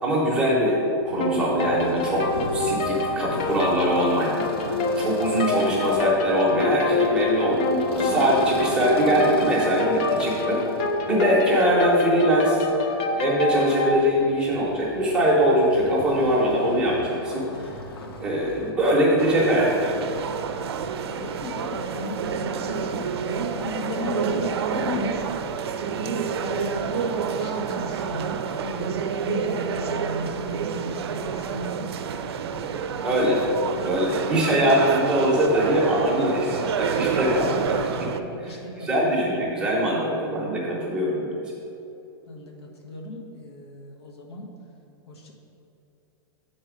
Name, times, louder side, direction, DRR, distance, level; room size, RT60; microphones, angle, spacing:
voice 1, 0.0-2.3 2.5-10.6 11.1-12.7 13.2-17.7 18.2-20.2 33.0-33.4 33.8-37.9 38.8-41.3, equal, 5° right, -5 dB, 0.9 m, -22 dB
sound 1, 1.1-18.7, equal, 70° left, 0.9 m, -36 dB
sound 2, 1.2-14.0, left 3 dB, 30° left, 0.4 m, -26 dB
sound 3, 19.2-38.2, right 6 dB, 75° right, 0.4 m, -28 dB
voice 2, 21.2-25.2 25.8-31.9 32.5-33.2 33.7-34.0 38.0-39.0 42.2-44.5 45.1-45.3, left 1 dB, 85° left, 0 dB, 1.2 m, -35 dB
6.5 x 4.1 x 5.0 m, 2.9 s
supercardioid pair, 170°, 13 cm